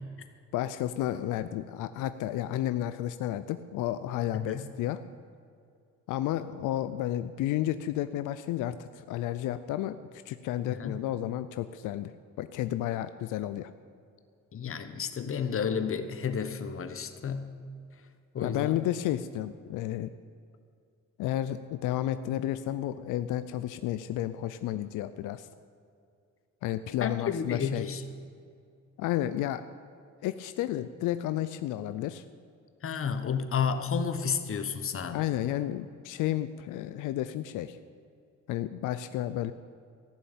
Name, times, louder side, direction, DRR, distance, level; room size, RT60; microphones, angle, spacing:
voice 1, 0.5-5.0 6.1-12.1 12.4-13.7 18.4-20.1 21.2-25.5 26.6-27.9 29.0-29.6 30.2-32.2 35.1-37.8 38.5-39.5, left 13 dB, 90° left, 12 dB, 0.5 m, -32 dB
voice 2, 4.3-4.7 10.7-11.0 14.5-17.5 18.3-18.9 27.0-28.0 32.8-35.2, left 6 dB, 45° left, 9 dB, 1.2 m, -31 dB
15.0 x 7.1 x 8.5 m, 2.3 s
cardioid pair, 90°, 30 cm